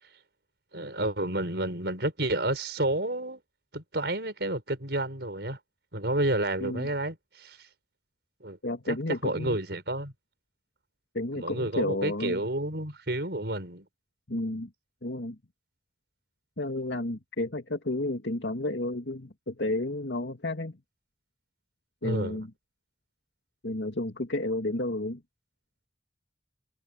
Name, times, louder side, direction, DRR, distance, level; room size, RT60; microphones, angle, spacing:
voice 1, 0.7-3.4 3.7-5.6 5.9-7.6 8.4-8.6 8.9-9.0 9.2-10.1 11.3-13.8 22.0-22.4, right 1 dB, 70° right, 6.0 m, -30 dB
voice 2, 6.6-6.9 8.6-9.6 11.1-12.4 14.3-14.7 15.0-15.4 16.6-20.8 22.0-22.5 23.6-25.2, left 2 dB, 85° left, 2.3 m, -31 dB
head